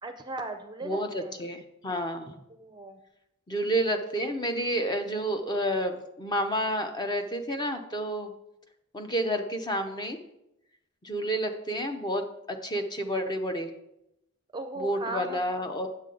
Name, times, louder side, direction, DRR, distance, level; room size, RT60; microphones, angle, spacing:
voice 1, 0.0-1.4 2.5-3.0 14.5-15.7, right 2 dB, 20° right, 7 dB, 0.5 m, -38 dB
voice 2, 0.8-2.3 3.5-8.3 8.9-10.2 11.0-13.7 14.8-15.9, equal, 20° left, 6 dB, 0.7 m, -30 dB
9.0 x 7.5 x 3.8 m, 0.85 s
head